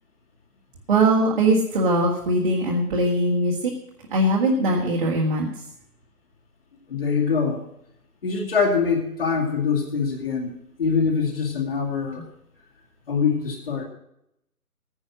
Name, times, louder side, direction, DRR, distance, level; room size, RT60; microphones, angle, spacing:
voice 1, 0.9-3.7 4.1-5.5, right 1 dB, 35° right, -2 dB, 1.8 m, -21 dB
voice 2, 6.9-7.6 8.2-10.5 10.8-12.2 13.1-13.8, left 5 dB, 40° left, -1 dB, 2.3 m, -23 dB
14.5 x 9.9 x 6.2 m, 0.79 s
figure-of-eight pair, 150°, 46 cm